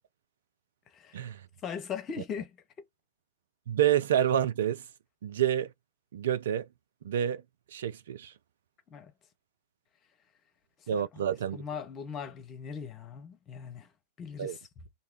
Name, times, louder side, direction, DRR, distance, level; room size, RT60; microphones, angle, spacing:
voice 1, 1.6-2.6 8.9-9.1 10.9-11.2 11.5-13.9 14.2-14.6, left 7 dB, 30° left, 0.7 m, -39 dB
voice 2, 3.7-4.8 5.2-5.7 6.1-6.7 7.0-7.4 7.7-8.3 10.9-11.6 14.4-14.6, right 10 dB, 60° right, 0.3 m, -28 dB
2.6 x 2.2 x 3.6 m
figure-of-eight pair, 90°, 0 cm